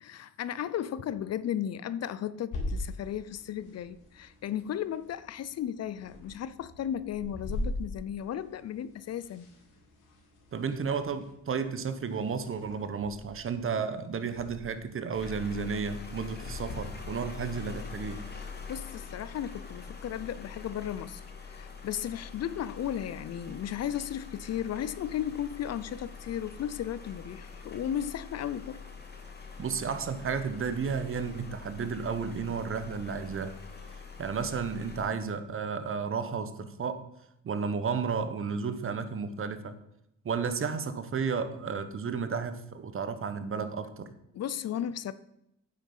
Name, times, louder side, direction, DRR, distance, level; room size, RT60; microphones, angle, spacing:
voice 1, 0.0-9.5 18.4-28.8 44.3-45.1, left 10 dB, 55° left, 0.6 m, -35 dB
sound 1, 2.5-16.7, left 1 dB, 80° left, 3.3 m, -42 dB
voice 2, 10.5-18.2 29.6-33.6 34.2-37.1 37.4-39.7 40.2-44.1, right 5 dB, 45° right, 1.2 m, -32 dB
sound 2, 15.1-35.1, left 5 dB, 35° left, 2.7 m, -44 dB
9.5 x 7.7 x 5.6 m
cardioid pair, 90°, 30 cm